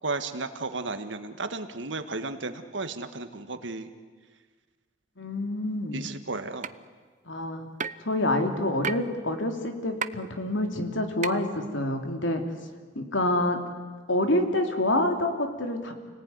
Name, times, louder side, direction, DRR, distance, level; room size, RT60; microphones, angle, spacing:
voice 1, 0.0-3.9 5.9-6.8, right 3 dB, 70° right, 8 dB, 1.8 m, -34 dB
voice 2, 5.2-6.0 7.3-7.7 8.0-12.4 12.9-13.6 14.1-15.9, left 1 dB, 75° left, 5 dB, 3.1 m, -27 dB
sound 1, 6.6-6.7 7.8-8.1 8.8-9.0 10.0-10.1 11.2-11.3, right 6 dB, 40° right, 0.8 m, -30 dB
29.0 x 19.5 x 9.6 m, 1.5 s
head